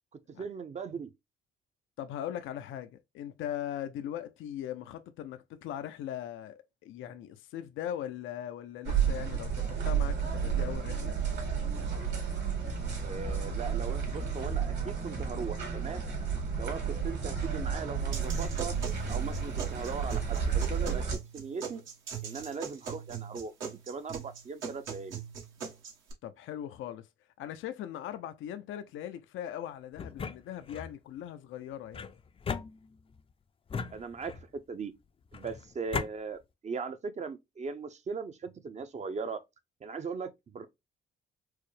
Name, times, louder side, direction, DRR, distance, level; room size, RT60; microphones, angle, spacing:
voice 1, 0.3-1.1 13.0-16.0 16.6-18.8 19.1-21.0 21.3-21.8 22.2-25.2 33.9-34.9 35.3-39.4 39.8-40.7, right 5 dB, 35° right, 0.6 m, -39 dB
voice 2, 2.0-11.2 26.2-27.1 27.4-32.1, left 11 dB, 80° left, 0.5 m, -40 dB
sound 1, 8.8-21.2, right 6 dB, 60° right, 2.2 m, -32 dB
sound 2, 18.1-26.1, right 7 dB, 75° right, 1.5 m, -41 dB
sound 3, 30.0-30.9 31.9-33.2 33.7-34.6 35.3-36.1, left 5 dB, 30° left, 0.4 m, -38 dB
4.6 x 2.0 x 3.2 m
cardioid pair, 90°, 20 cm